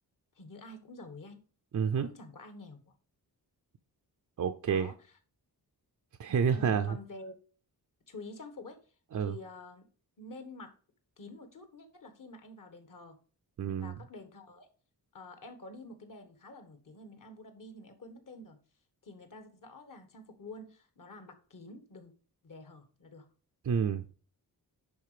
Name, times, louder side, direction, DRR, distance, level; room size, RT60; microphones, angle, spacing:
voice 1, 0.3-1.4 2.0-2.8 4.7-4.9 6.5-7.4 8.1-8.8 9.3-9.9 10.2-10.7 11.2-13.2 13.8-14.7 15.1-18.6 19.0-22.1 22.4-23.3, left 2 dB, 55° left, 7 dB, 1.5 m, -48 dB
voice 2, 1.7-2.1 4.4-4.9 6.2-7.0 9.1-9.4 13.6-13.9 23.6-24.0, right 7 dB, 50° right, 7 dB, 0.5 m, -29 dB
10.5 x 3.9 x 5.0 m, 0.39 s
wide cardioid pair, 170°, 38 cm